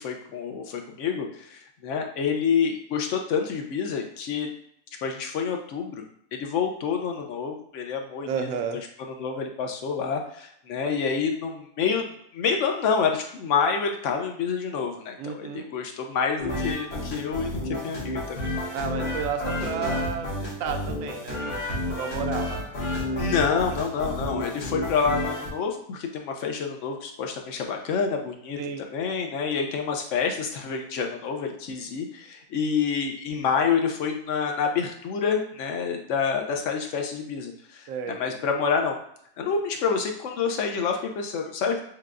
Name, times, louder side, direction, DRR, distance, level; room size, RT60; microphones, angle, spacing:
voice 1, 0.0-4.5 5.0-6.0 6.3-8.6 9.0-12.1 12.3-17.5 17.8-18.4 23.2-39.0 39.4-41.8, left 6 dB, 65° left, 3 dB, 0.8 m, -28 dB
voice 2, 8.3-8.8 15.2-15.7 18.7-22.7 23.8-24.1 28.6-28.8 37.9-38.2, right 6 dB, 70° right, 5 dB, 0.9 m, -32 dB
sound 1, 16.4-25.5, left 1 dB, 45° left, 1.2 m, -31 dB
6.4 x 2.2 x 2.4 m, 0.68 s
omnidirectional pair, 1.6 m